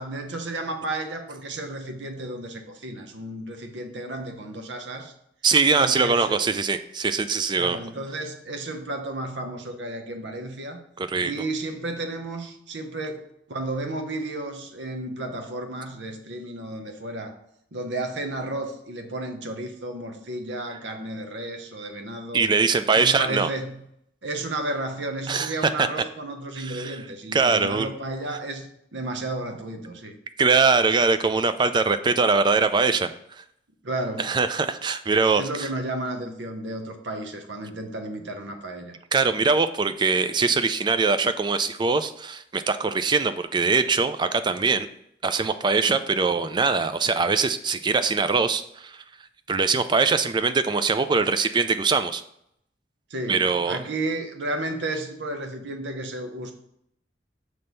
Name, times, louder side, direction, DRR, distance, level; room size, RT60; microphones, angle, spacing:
voice 1, 0.0-5.1 5.8-6.4 7.6-10.8 11.2-17.4 17.7-22.5 22.9-23.8 24.2-30.1 33.8-34.3 35.3-39.0 53.1-56.5, right 2 dB, 80° right, 5 dB, 0.9 m, -33 dB
voice 2, 5.4-7.8 11.0-11.3 22.3-23.5 25.3-25.5 25.8-25.9 26.6-27.0 27.3-27.9 30.4-33.1 33.4-33.5 34.2-35.7 39.1-44.9 45.2-49.0 49.5-52.2 53.3-53.8, right 4 dB, 25° right, 10 dB, 0.3 m, -22 dB
6.0 x 3.3 x 5.3 m, 0.74 s
head